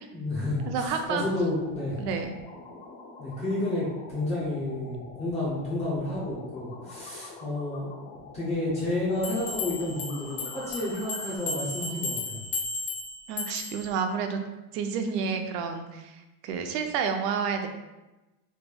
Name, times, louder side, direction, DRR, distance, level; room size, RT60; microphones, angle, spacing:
voice 1, 0.1-2.0 3.2-7.9 8.3-12.4, left 1 dB, 15° left, -6 dB, 0.3 m, -30 dB
sound 1, 0.6-11.4, left 3 dB, 85° left, 1.2 m, -46 dB
voice 2, 0.7-1.3 2.0-2.3 13.3-14.4 14.7-17.7, right 6 dB, 80° right, 5 dB, 0.6 m, -30 dB
sound 2, 9.2-13.9, left 4 dB, 60° left, 1.0 m, -34 dB
3.2 x 2.2 x 3.4 m, 1.1 s
supercardioid pair, 150°, 47 cm